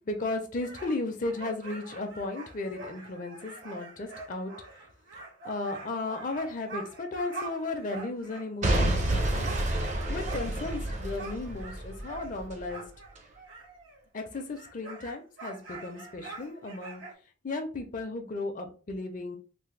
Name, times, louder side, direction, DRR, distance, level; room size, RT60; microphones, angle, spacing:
voice 1, 0.1-4.5 5.4-9.5 10.1-12.8 14.1-17.0 17.4-19.4, left 2 dB, 40° left, 5 dB, 0.5 m, -35 dB
sound 1, 0.6-8.5 8.8-14.0 14.3-17.1, right 3 dB, 75° right, 1.7 m, -45 dB
Boom / Shatter / Crushing, 8.6-12.6 13.2-13.3, right 1 dB, 35° right, 0.5 m, -29 dB
3.3 x 2.1 x 3.1 m, 0.37 s
head